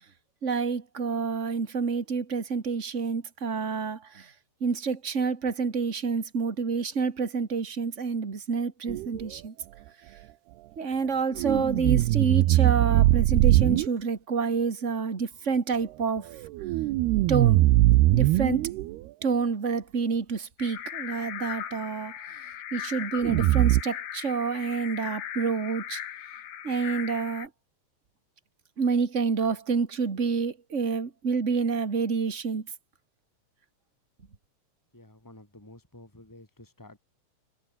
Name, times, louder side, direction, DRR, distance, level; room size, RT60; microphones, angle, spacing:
voice 1, 0.4-4.3 4.6-9.5 10.8-16.3 17.3-17.7 18.1-18.7 19.2-22.4 22.7-26.0 26.6-27.5 28.8-32.7, right 5 dB, 35° right, 1.2 m, -28 dB
sound 1, 8.9-9.2 11.4-13.9 16.4-19.0 23.2-23.8, right 17 dB, 80° right, 2.9 m, -21 dB
sound 2, 20.6-27.5, left 11 dB, 75° left, 4.0 m, -38 dB
voice 2, 34.9-37.0, left 1 dB, 5° left, 5.9 m, -51 dB
omnidirectional pair, 4.6 m